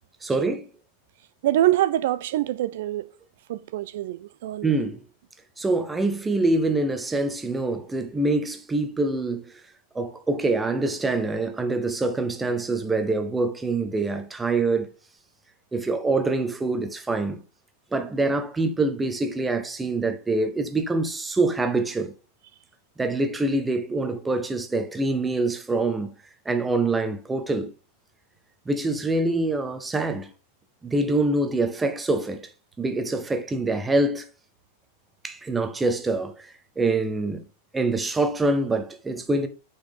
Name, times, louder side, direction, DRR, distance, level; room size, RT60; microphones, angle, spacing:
voice 1, 0.2-0.7 4.6-5.0 5.6-9.4 9.9-14.9 15.7-17.4 17.9-22.1 23.0-26.1 26.4-27.7 28.6-30.3 30.8-32.4 32.8-34.2 35.2-37.4 37.7-39.5, right 2 dB, 10° right, 1.3 m, -25 dB
voice 2, 1.4-3.1 3.5-4.7, right 14 dB, 55° right, 0.5 m, -25 dB
8.3 x 6.0 x 3.7 m
figure-of-eight pair, 90°, 0 cm